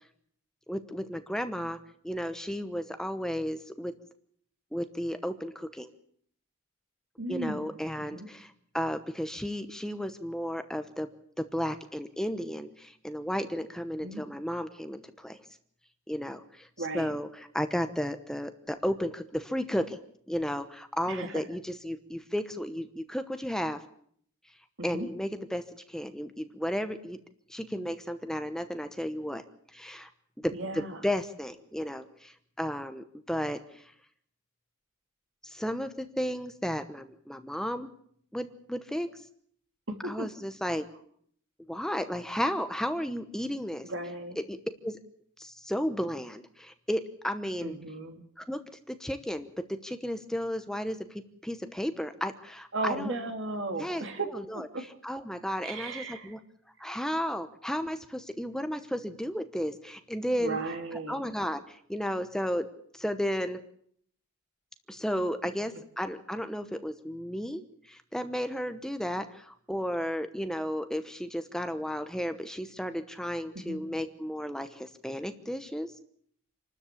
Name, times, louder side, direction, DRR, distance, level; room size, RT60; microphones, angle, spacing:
voice 1, 0.7-1.8 2.0-3.9 4.7-5.9 7.3-11.1 11.4-15.4 16.1-20.0 20.3-23.8 24.8-27.2 27.5-29.4 29.7-30.1 30.4-33.9 35.4-37.9 38.3-39.2 40.0-40.9 41.7-43.9 44.5-44.6 44.8-45.0 45.4-47.8 48.4-48.6 48.9-53.1 53.8-54.1 54.3-54.7 55.0-56.4 56.8-60.6 60.9-62.7 62.9-63.6 64.9-75.9, equal, 5° left, 9 dB, 1.0 m, -33 dB
voice 2, 7.2-8.3 14.0-14.2 16.8-17.1 21.1-21.3 24.8-25.1 30.5-31.0 39.9-40.3 43.8-44.4 47.6-48.2 52.7-54.3 54.5-54.8 55.6-56.3 60.4-61.2 73.5-73.8, right 2 dB, 60° right, 5 dB, 2.8 m, -35 dB
27.0 x 13.0 x 8.5 m, 0.63 s
head